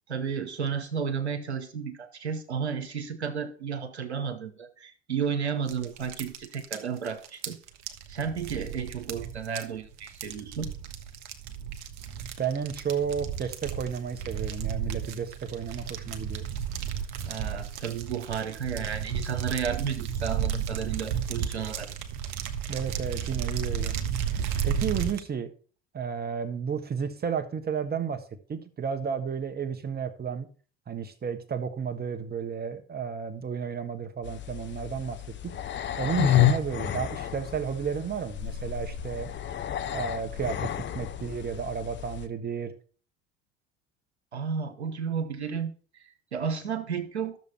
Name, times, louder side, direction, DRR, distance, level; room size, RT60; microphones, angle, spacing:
voice 1, 0.1-7.6 8.1-10.7 17.3-21.9 44.3-46.0 46.3-47.4, right 6 dB, 90° right, 10 dB, 1.2 m, -32 dB
sound 1, 5.7-25.2, right 8 dB, 60° right, 1.3 m, -33 dB
voice 2, 12.4-16.4 22.7-23.9 24.6-25.5 25.9-28.2 28.5-30.5 30.9-35.6 36.0-39.3 39.8-42.7, right 7 dB, 30° right, 10 dB, 1.5 m, -32 dB
sound 2, 34.2-42.3, left 10 dB, 35° left, 0.9 m, -30 dB
12.0 x 7.0 x 4.3 m, 0.40 s
hypercardioid pair, 65°, 33 cm